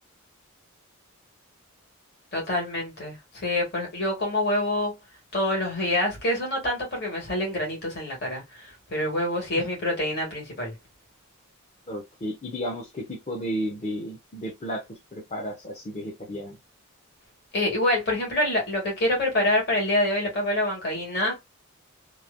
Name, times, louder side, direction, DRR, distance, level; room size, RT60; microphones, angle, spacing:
voice 1, 2.3-4.9 5.3-10.7 17.5-21.4, left 1 dB, 45° left, 1.6 m, -26 dB
voice 2, 11.9-16.6, equal, 30° left, 0.6 m, -33 dB
3.1 x 2.1 x 2.5 m
head